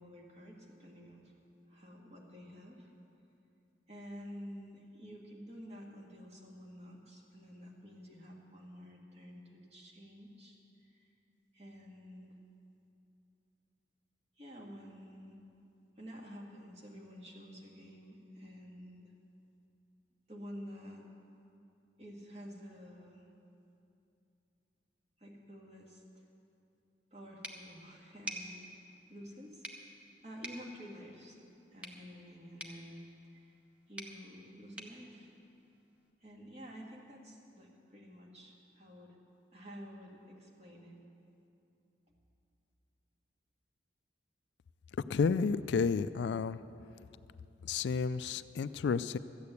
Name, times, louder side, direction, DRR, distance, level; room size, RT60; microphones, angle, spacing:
voice 1, 0.0-1.3 1.7-2.9 3.9-11.1 11.5-12.3 14.4-15.4 16.0-19.1 20.3-21.0 22.0-23.3 25.2-26.3 27.1-29.7 30.2-31.4 31.7-33.6 33.9-35.3 36.2-39.2 39.5-41.0, equal, 35° right, -1 dB, 1.9 m, -50 dB
sound 1, 27.4-36.1, right 1 dB, 5° right, 0.9 m, -50 dB
voice 2, 45.1-46.6 47.7-49.2, left 5 dB, 70° left, 15 dB, 0.3 m, -31 dB
13.5 x 8.6 x 8.2 m, 2.7 s
head